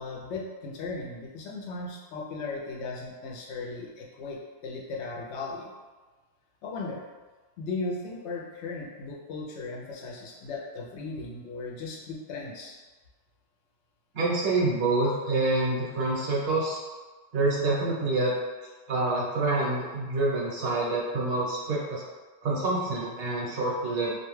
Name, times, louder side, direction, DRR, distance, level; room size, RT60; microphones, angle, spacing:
voice 1, 0.0-5.7 6.6-7.0 7.6-12.8, left 3 dB, 90° left, -2 dB, 0.9 m, -37 dB
voice 2, 14.1-16.8 17.3-18.3 18.9-22.0 22.4-24.1, right 2 dB, 65° right, -4 dB, 0.9 m, -27 dB
2.4 x 2.2 x 3.1 m, 1.3 s
omnidirectional pair, 1.1 m